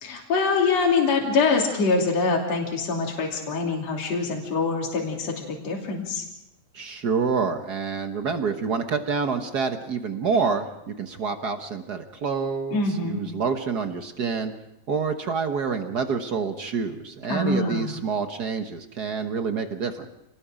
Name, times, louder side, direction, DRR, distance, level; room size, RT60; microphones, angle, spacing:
voice 1, 0.0-6.3 12.7-13.2 17.3-18.0, left 4 dB, 60° left, 0 dB, 4.0 m, -24 dB
voice 2, 6.7-14.5 14.9-20.1, right 5 dB, 55° right, 7 dB, 1.1 m, -27 dB
27.5 x 19.5 x 5.1 m, 0.86 s
omnidirectional pair, 3.3 m